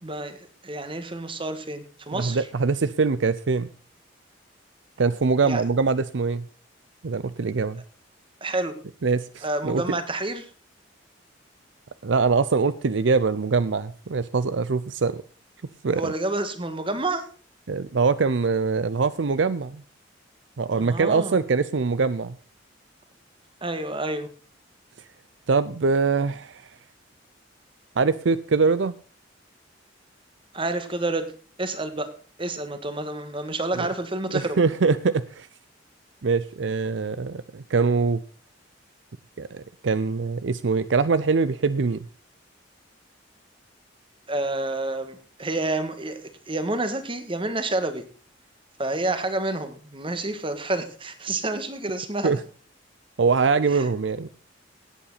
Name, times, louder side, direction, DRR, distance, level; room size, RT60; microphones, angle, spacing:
voice 1, 0.0-2.5 5.4-5.6 8.4-8.8 9.4-10.5 15.9-17.3 20.7-21.4 23.6-24.3 30.5-31.3 31.6-32.1 32.4-34.6 44.3-48.0 48.8-52.4 53.7-53.9, right 2 dB, 25° right, 9 dB, 1.7 m, -29 dB
voice 2, 2.1-3.7 5.0-6.4 7.0-7.8 9.0-9.8 12.0-15.2 15.8-16.1 17.7-19.8 20.6-22.4 25.5-26.6 28.0-29.0 33.8-33.9 34.3-35.5 36.2-38.2 39.4-42.1 52.2-52.4 53.2-54.3, right 4 dB, 70° right, 15 dB, 0.5 m, -23 dB
17.5 x 8.7 x 4.1 m, 0.40 s
head